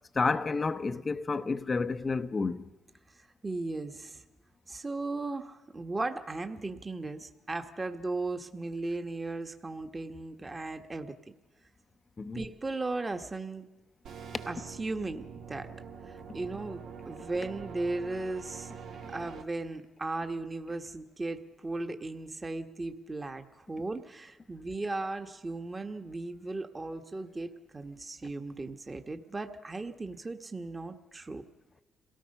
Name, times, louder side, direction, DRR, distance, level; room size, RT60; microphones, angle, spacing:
voice 1, 0.1-2.7 12.2-12.5, left 4 dB, 30° left, 0.8 m, -30 dB
voice 2, 3.4-4.2 4.7-11.2 12.3-13.7 14.5-15.7 16.0-18.8 19.1-31.4, right 2 dB, 25° right, 1.4 m, -36 dB
sound 1, 14.0-19.4, right 6 dB, 80° right, 1.9 m, -45 dB
27.0 x 18.0 x 5.5 m
cardioid pair, 90°, 0 cm